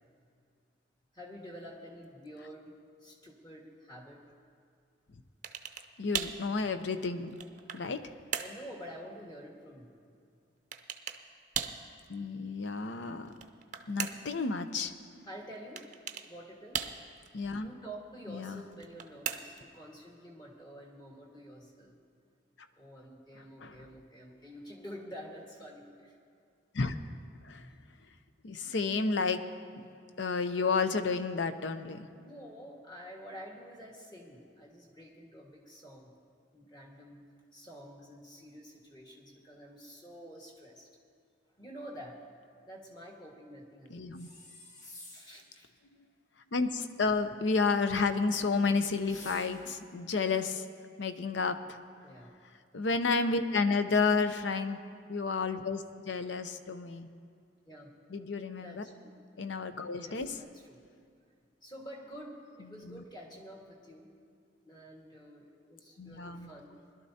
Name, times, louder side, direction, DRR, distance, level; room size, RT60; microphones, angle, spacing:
voice 1, 1.1-4.2 7.6-7.8 8.4-10.0 15.2-15.9 16.3-16.9 17.6-22.0 22.7-26.2 32.2-36.1 36.5-37.2 37.5-40.9 41.6-42.2 42.6-44.0 45.1-45.7 52.0-52.3 57.7-57.9 58.6-59.1 59.9-60.8 61.6-64.2 64.6-66.7, equal, 25° left, -1 dB, 1.6 m, -49 dB
sound 1, 5.4-5.9 6.1-6.4 7.1-7.9 8.3-8.6 10.7-11.2 11.5-11.8 13.3-14.4 15.8-16.3 16.7-17.3 18.7-19.7, right 8 dB, 40° right, 0.5 m, -37 dB
voice 2, 6.0-7.4 7.7-8.0 12.1-13.3 13.9-14.9 17.3-17.7 18.3-18.6 23.6-23.9 26.7-27.0 27.4-27.7 28.4-29.4 29.8-29.9 30.2-32.3 43.9-44.3 46.5-50.7 51.0-51.8 52.7-54.8 55.1-57.1 58.1-58.8 59.4-60.3 62.7-63.0 66.0-66.5, left 4 dB, 75° left, 9 dB, 0.6 m, -31 dB
sound 2, 44.1-45.5 49.0-49.8, left 2 dB, 40° left, 1.4 m, -50 dB
21.0 x 12.0 x 2.8 m, 2.4 s
head